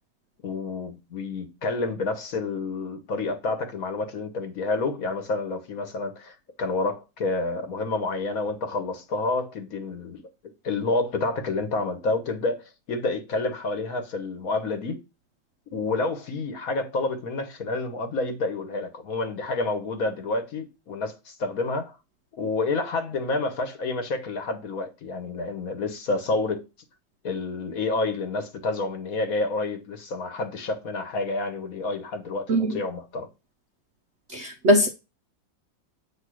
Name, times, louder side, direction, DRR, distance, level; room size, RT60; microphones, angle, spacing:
voice 1, 0.4-10.2 10.6-15.0 15.7-22.0 22.4-26.6 27.2-33.3, left 3 dB, 50° left, 1.3 m, -29 dB
voice 2, 34.3-34.9, equal, 90° right, 0.6 m, -20 dB
7.9 x 3.0 x 6.2 m
omnidirectional pair, 2.1 m